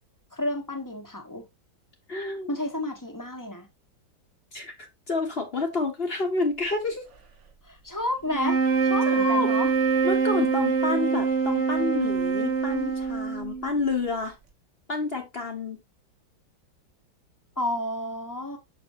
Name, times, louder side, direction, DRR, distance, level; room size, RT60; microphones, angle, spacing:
voice 1, 0.3-1.5 2.5-3.7 7.6-9.7 17.6-18.6, left 1 dB, 15° left, 0.9 m, -31 dB
voice 2, 2.1-2.6 4.5-7.1 9.1-9.5 10.0-14.4 14.9-15.8, left 3 dB, 35° left, 1.2 m, -29 dB
sound 1, 8.3-13.8, right 5 dB, 40° right, 1.3 m, -24 dB
6.0 x 5.9 x 3.0 m
omnidirectional pair, 2.1 m